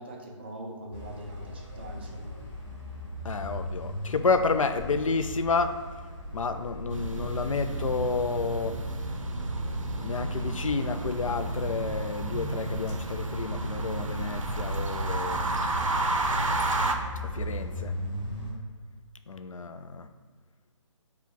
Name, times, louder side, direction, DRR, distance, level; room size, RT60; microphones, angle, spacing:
voice 1, 0.0-2.4, right 1 dB, 20° right, 0 dB, 0.3 m, -42 dB
sound 1, 0.9-18.5, equal, 10° left, 0.7 m, -39 dB
voice 2, 3.2-5.8 6.3-8.8 9.9-15.4 17.3-17.9 19.3-20.1, left 4 dB, 85° left, 9 dB, 0.4 m, -30 dB
sound 2, 6.9-17.0, right 2 dB, 80° right, 0.5 m, -31 dB
4.7 x 2.3 x 3.7 m, 1.5 s
figure-of-eight pair, 150°, 17 cm